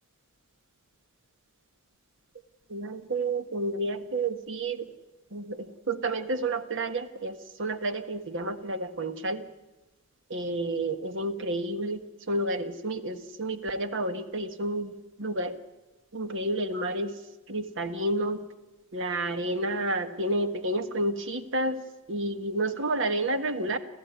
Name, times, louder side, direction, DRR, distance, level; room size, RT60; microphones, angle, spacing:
voice 1, 2.7-4.9 5.3-9.4 10.3-15.5 16.1-17.2 17.5-18.4 18.9-21.8 22.1-23.8, right 2 dB, 60° right, 9 dB, 1.5 m, -30 dB
28.5 x 14.5 x 9.5 m, 1.1 s
head